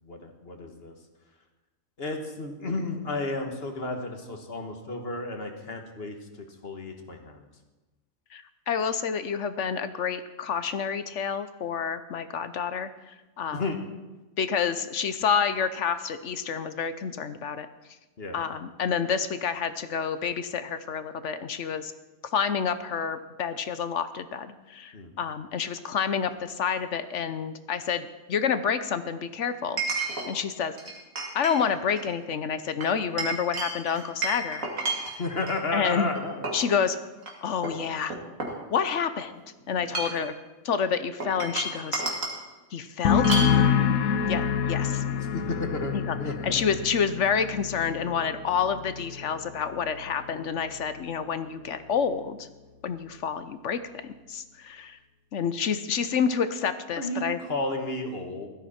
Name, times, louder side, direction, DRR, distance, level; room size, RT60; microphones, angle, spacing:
voice 1, 0.1-0.9 2.0-6.2 6.6-7.4 13.5-13.8 18.2-18.4 24.9-25.1 35.2-36.4 44.9-45.0 45.3-46.7 57.0-58.5, left 2 dB, 45° left, 4 dB, 1.8 m, -32 dB
voice 2, 8.3-13.6 14.4-17.7 18.3-21.9 22.3-30.7 31.3-34.7 35.7-36.1 36.5-37.0 37.4-38.2 38.7-40.3 40.6-42.2 42.7-43.4 44.3-45.0 45.9-46.2 46.4-52.5 52.8-55.0 55.3-57.4, left 7 dB, 65° left, 12 dB, 1.0 m, -29 dB
Chink clink, 26.3-26.4 29.8-30.3 30.8-31.6 31.9-32.1 32.8-35.6 36.2-36.7 37.2-37.3 37.6-39.1 39.8-40.3 41.2-42.4 43.2-43.6, right 3 dB, 70° right, 2.8 m, -31 dB
sound 1, 43.0-50.5 50.8-51.3, left 7 dB, 90° left, 1.2 m, -27 dB
16.5 x 13.0 x 4.3 m, 1.1 s
omnidirectional pair, 1.4 m